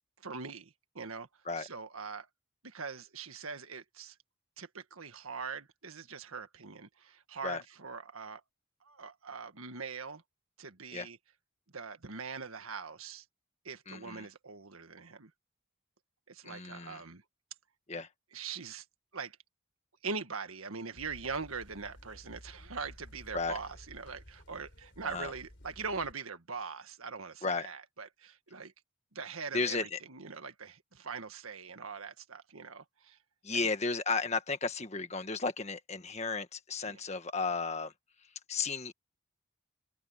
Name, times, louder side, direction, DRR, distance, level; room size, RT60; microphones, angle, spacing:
voice 1, 0.2-1.3 1.6-2.3 2.6-4.2 4.6-8.4 8.8-10.2 10.6-11.2 11.7-13.2 13.6-15.3 16.3-17.2 18.3-18.8 19.1-19.4 20.0-28.7 29.1-33.2 33.5-33.7 36.8-37.0, right 5 dB, 85° right, 1.7 m, -42 dB
voice 2, 13.9-14.3 16.4-17.0 17.9-18.1 23.3-23.6 25.0-25.3 27.4-27.7 29.5-30.0 33.4-37.9 38.5-38.9, left 4 dB, 30° left, 1.6 m, -34 dB
sound 1, 21.0-26.1, equal, 55° left, 3.7 m, -54 dB
head